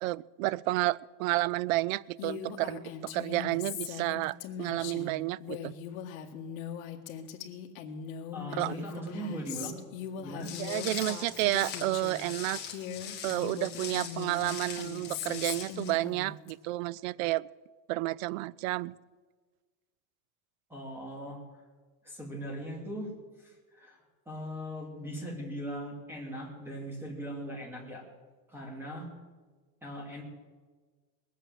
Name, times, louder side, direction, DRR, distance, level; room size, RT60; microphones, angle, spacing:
voice 1, 0.0-5.7 8.6-8.8 10.6-12.6 13.2-17.5 17.9-18.9, right 18 dB, 65° right, 23 dB, 0.5 m, -31 dB
Female speech woman speaking, 2.2-12.3 12.6-16.5, left 8 dB, 65° left, 1.7 m, -40 dB
voice 2, 8.3-9.8 10.2-10.5 20.7-21.4 22.0-23.1 23.4-24.0 24.3-28.0 28.5-29.1 29.8-30.2, equal, 5° right, -1 dB, 2.6 m, -39 dB
Walk footsteps, 10.4-15.9, left 8 dB, 25° left, 1.8 m, -41 dB
20.0 x 8.3 x 7.7 m, 1.4 s
cardioid pair, 175°, 44 cm